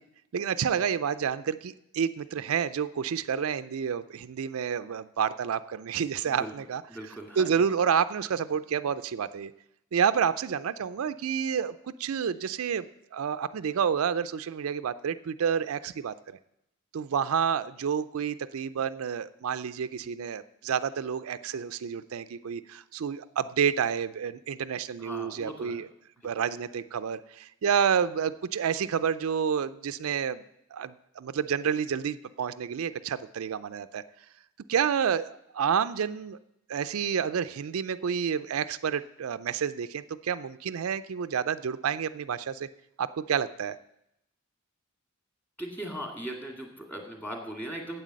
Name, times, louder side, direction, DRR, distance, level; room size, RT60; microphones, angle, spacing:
voice 1, 0.3-6.8 7.4-9.5 9.9-12.9 13.1-16.1 16.9-25.9 26.2-30.4 30.7-34.0 34.7-36.4 36.7-42.7 43.0-43.8, right 7 dB, 75° right, 12 dB, 0.4 m, -29 dB
voice 2, 6.2-6.5 6.9-7.6 25.0-25.8 45.6-48.0, right 1 dB, 10° left, 1 dB, 2.0 m, -39 dB
9.1 x 8.1 x 7.4 m, 0.81 s
head